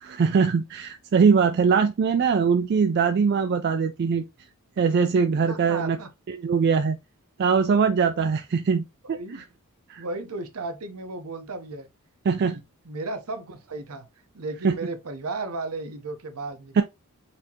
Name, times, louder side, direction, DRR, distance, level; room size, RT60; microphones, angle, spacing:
voice 1, 0.0-4.2 4.8-6.0 6.3-7.0 7.4-9.2 9.9-10.0 12.3-12.6 14.6-14.7 16.8-16.9, right 5 dB, 50° right, 0.3 m, -22 dB
voice 2, 5.5-6.1 9.1-9.4 10.0-11.9 12.4-14.1 14.3-16.8, right 3 dB, 75° right, 0.7 m, -34 dB
4.2 x 2.8 x 2.8 m
head